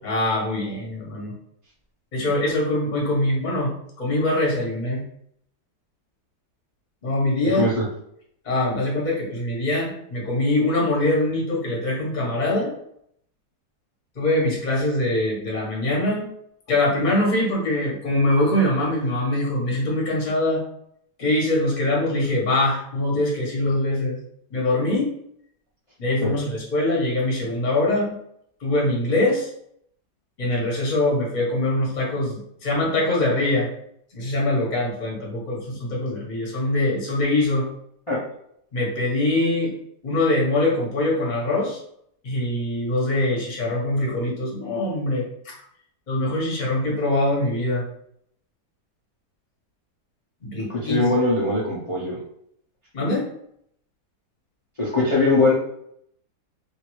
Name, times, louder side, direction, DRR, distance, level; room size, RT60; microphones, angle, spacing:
voice 1, 0.0-1.3 2.1-5.0 7.0-7.7 8.4-12.7 14.1-16.3 16.7-20.6 21.2-24.2 24.5-25.1 26.0-28.1 28.6-29.5 30.4-33.7 34.1-37.7 38.7-39.7 40.0-41.8 42.2-45.5 46.1-47.8 50.4-51.1 52.9-53.3, left 1 dB, 35° left, -3 dB, 0.9 m, -23 dB
voice 2, 7.4-7.9 26.2-26.4 38.1-38.2 50.7-52.2 54.8-55.5, left 2 dB, 60° left, -7 dB, 0.3 m, -21 dB
2.8 x 2.6 x 3.0 m, 0.70 s
omnidirectional pair, 1.8 m